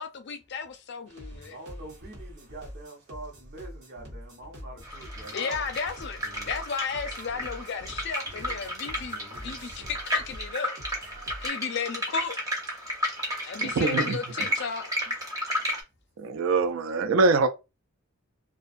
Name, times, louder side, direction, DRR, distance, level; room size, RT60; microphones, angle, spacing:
voice 1, 0.0-1.6 5.3-6.2 6.5-10.7 11.4-12.4 13.5-15.1, left 6 dB, 55° left, 0.4 m, -34 dB
sound 1, 1.1-11.5, equal, 85° right, 1.1 m, -44 dB
voice 2, 1.5-5.7, right 2 dB, 45° right, 0.8 m, -44 dB
sound 2, 4.8-15.8, equal, 15° right, 0.6 m, -33 dB
voice 3, 13.6-14.5 16.2-17.5, right 3 dB, 65° right, 0.4 m, -24 dB
2.5 x 2.2 x 2.5 m
head